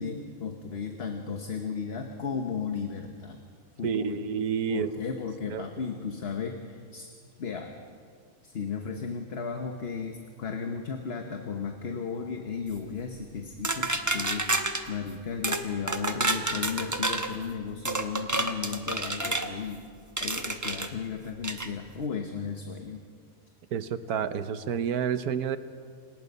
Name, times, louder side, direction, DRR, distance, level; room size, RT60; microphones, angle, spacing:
voice 1, 0.0-3.4 3.8-4.2 4.7-7.1 7.4-7.7 8.4-19.8 20.2-23.0, left 6 dB, 45° left, 4 dB, 1.2 m, -35 dB
voice 2, 3.8-4.9 5.5-5.6 23.7-25.6, right 7 dB, 75° right, 12 dB, 1.3 m, -29 dB
sound 1, 13.6-14.8 15.4-15.6 15.9-17.3 17.8-19.5 20.2-20.9 21.4-21.7, right 2 dB, 15° right, 0.8 m, -29 dB
28.0 x 18.0 x 5.4 m, 2.1 s
omnidirectional pair, 1.7 m